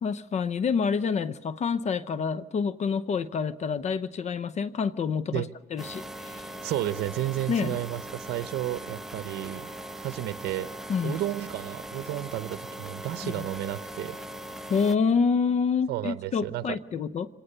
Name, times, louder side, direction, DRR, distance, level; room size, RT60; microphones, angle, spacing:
voice 1, 0.0-5.4 5.7-6.5 7.5-7.7 10.9-11.2 13.2-13.4 14.7-17.3, left 5 dB, 40° left, 16 dB, 0.8 m, -27 dB
sound 1, 5.8-15.0, right 1 dB, ahead, 1.1 m, -40 dB
voice 2, 6.6-9.7 10.0-10.7 11.0-14.2 15.9-16.8, right 14 dB, 75° right, 13 dB, 0.8 m, -32 dB
25.5 x 18.5 x 6.8 m, 1.1 s
cardioid pair, 110°, 17 cm